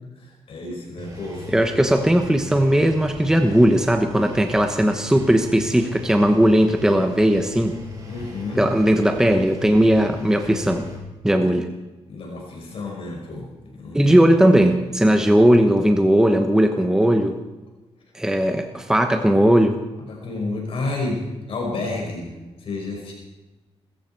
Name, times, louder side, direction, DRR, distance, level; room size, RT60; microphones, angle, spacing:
voice 1, 0.2-1.6 8.1-8.7 12.1-14.2 20.1-22.3 22.6-23.1, left 2 dB, 60° left, -1 dB, 5.5 m, -30 dB
Engine, 1.0-11.0, left 4 dB, 35° right, 4.8 m, -39 dB
voice 2, 1.5-7.8 8.6-10.9 11.2-11.7 13.9-17.4 18.1-19.8, right 1 dB, 5° right, 5 dB, 1.1 m, -18 dB
21.0 x 14.5 x 4.7 m, 1.1 s
cardioid pair, 130°, 11 cm